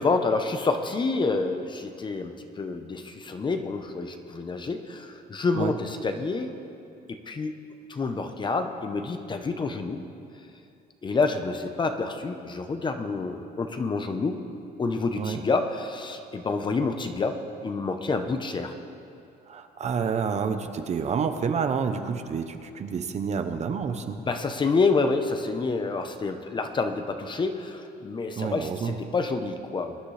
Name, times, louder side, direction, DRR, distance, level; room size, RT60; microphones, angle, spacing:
voice 1, 0.0-6.5 7.1-7.5 7.9-10.0 11.0-14.4 14.8-17.4 17.6-18.7 24.2-30.0, left 4 dB, 25° left, 7 dB, 0.9 m, -28 dB
voice 2, 19.5-24.2 28.4-29.0, right 6 dB, 40° right, 8 dB, 0.8 m, -29 dB
22.5 x 10.0 x 3.3 m, 2.6 s
cardioid pair, 110°, 17 cm